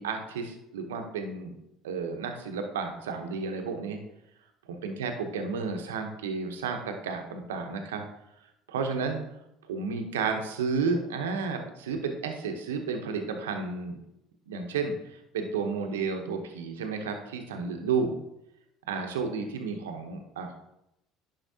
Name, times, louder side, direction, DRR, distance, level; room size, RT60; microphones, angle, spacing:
voice 1, 0.0-1.6 1.8-4.0 4.7-8.0 8.7-9.2 9.7-14.0 14.5-18.2 18.9-20.5, right 5 dB, 90° right, 5 dB, 0.8 m, -32 dB
10.0 x 5.7 x 2.8 m, 0.87 s
hypercardioid pair, 75°, 0 cm